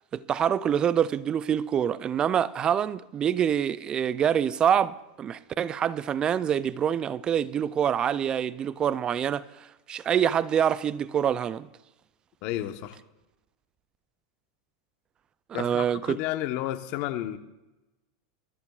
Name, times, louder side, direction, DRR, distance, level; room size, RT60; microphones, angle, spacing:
voice 1, 0.1-11.7 15.6-16.2, right 9 dB, 30° right, 0.4 m, -26 dB
voice 2, 12.4-13.0 15.5-17.4, left 14 dB, 55° left, 1.1 m, -31 dB
23.5 x 13.5 x 2.4 m
hypercardioid pair, 110°, 3 cm